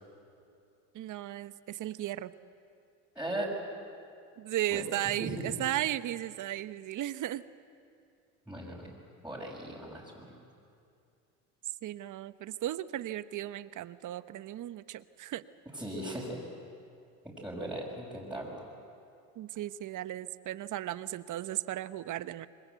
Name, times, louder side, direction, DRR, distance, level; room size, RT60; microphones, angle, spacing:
voice 1, 0.9-2.3 4.4-7.4 11.8-15.4 19.4-22.5, right 13 dB, 50° right, 15 dB, 0.9 m, -35 dB
voice 2, 3.1-3.6 4.7-4.8 5.2-5.5 8.5-8.9 9.2-10.3 15.7-16.5 17.2-18.6, right 1 dB, 5° right, -6 dB, 6.1 m, -38 dB
27.0 x 21.5 x 8.2 m, 2.5 s
supercardioid pair, 85°, 38 cm